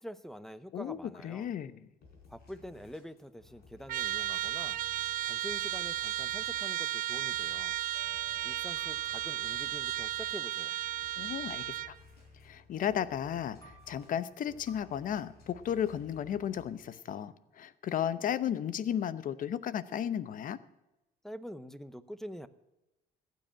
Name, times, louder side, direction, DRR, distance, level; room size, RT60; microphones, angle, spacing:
voice 1, 0.0-1.5 2.3-4.8 5.2-7.8 8.4-10.8 21.2-22.5, equal, ahead, 15 dB, 0.8 m, -46 dB
voice 2, 0.7-1.8 11.2-12.0 12.4-20.6, left 9 dB, 55° left, 16 dB, 0.8 m, -34 dB
sound 1, 2.0-16.8, left 4 dB, 70° left, 4.2 m, -58 dB
Trumpet, 3.9-12.0, right 14 dB, 55° right, 0.4 m, -34 dB
sound 2, 7.9-10.2 10.7-12.5 12.8-14.7, right 2 dB, 20° left, 3.3 m, -61 dB
15.0 x 9.4 x 7.5 m, 0.96 s
cardioid pair, 110°, 17 cm